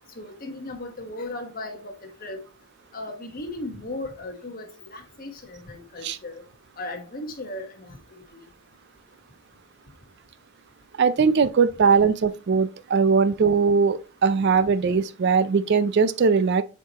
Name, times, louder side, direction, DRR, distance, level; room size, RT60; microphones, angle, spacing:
voice 1, 0.1-2.4 2.9-6.4 6.8-8.4 11.2-11.3, left 2 dB, 40° left, 1.3 m, -37 dB
voice 2, 11.0-16.6, right 5 dB, 50° right, 0.4 m, -20 dB
7.3 x 4.6 x 2.9 m
head